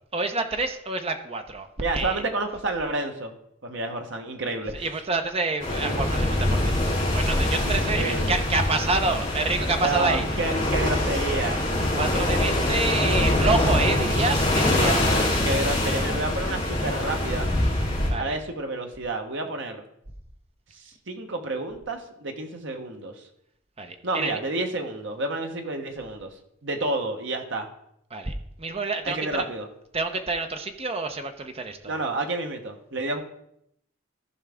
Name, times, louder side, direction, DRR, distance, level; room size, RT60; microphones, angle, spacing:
voice 1, 0.1-1.7 1.9-2.2 4.7-10.3 12.0-15.2 18.1-18.4 23.8-24.4 28.1-28.3 28.6-29.5 29.9-31.9, right 3 dB, 30° right, 6 dB, 0.8 m, -28 dB
voice 2, 1.8-3.3 3.6-5.0 5.8-5.9 7.6-8.4 9.8-11.7 12.7-12.8 14.6-17.5 18.2-19.8 20.7-23.2 24.0-26.3 26.6-27.7 29.0-29.7 31.9-33.2, right 2 dB, 60° right, 4 dB, 1.3 m, -30 dB
sound 1, 5.6-18.1, left 1 dB, 25° left, 4.0 m, -24 dB
14.0 x 5.6 x 3.6 m, 0.74 s
head